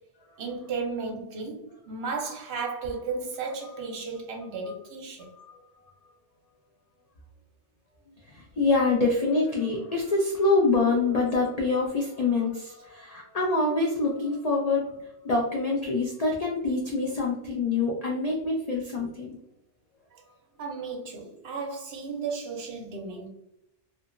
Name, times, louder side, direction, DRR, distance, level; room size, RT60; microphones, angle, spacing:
voice 1, 0.4-5.3 20.1-20.2 20.6-23.3, right 4 dB, 65° right, 0.8 m, -34 dB
voice 2, 8.3-19.4, left 3 dB, 75° left, 0.3 m, -26 dB
2.7 x 2.5 x 2.4 m
omnidirectional pair, 1.2 m